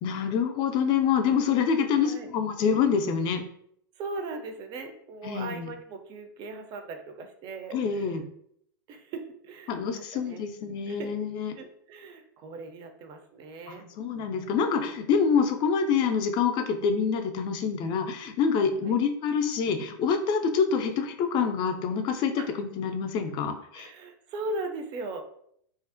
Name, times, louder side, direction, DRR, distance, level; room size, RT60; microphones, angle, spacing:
voice 1, 0.0-3.4 5.2-5.7 7.7-8.2 9.7-11.5 13.7-23.9, left 6 dB, 40° left, 6 dB, 0.4 m, -26 dB
voice 2, 1.9-2.3 4.0-8.1 8.9-10.4 10.9-11.1 11.6-13.9 18.8-19.0 20.8-20.9 22.4-22.5 23.7-25.2, right 2 dB, 40° right, 6 dB, 0.4 m, -39 dB
2.4 x 2.0 x 2.5 m, 0.69 s
hypercardioid pair, 105°, 12 cm